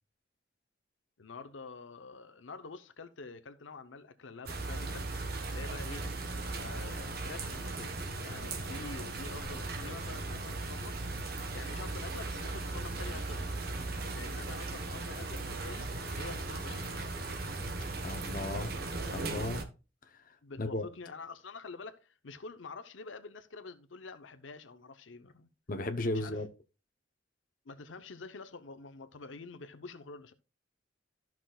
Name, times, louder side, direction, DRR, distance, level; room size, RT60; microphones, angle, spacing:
voice 1, 1.2-5.1 5.5-6.1 6.4-8.0 8.2-11.0 11.5-13.5 14.1-15.9 16.2-16.9 18.4-18.8 20.4-25.5 26.1-26.4 27.7-30.3, left 4 dB, 85° left, 0.8 m, -47 dB
sound 1, 4.5-19.6, right 2 dB, 55° right, 1.1 m, -37 dB
voice 2, 18.0-18.7 19.1-19.7 20.1-20.2 20.6-20.9 25.7-26.5, left 2 dB, 45° left, 0.8 m, -35 dB
13.5 x 6.0 x 2.3 m
head